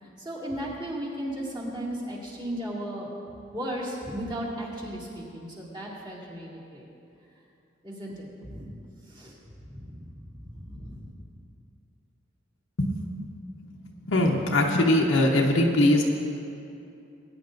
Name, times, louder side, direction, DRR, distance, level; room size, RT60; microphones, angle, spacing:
voice 1, 0.0-3.1 3.5-6.9 7.8-8.7 9.1-9.3 9.7-11.1, right 1 dB, 25° right, -6 dB, 2.2 m, -36 dB
voice 2, 14.1-16.0, left 1 dB, 80° left, -2 dB, 1.0 m, -21 dB
20.0 x 9.9 x 2.6 m, 2.6 s
head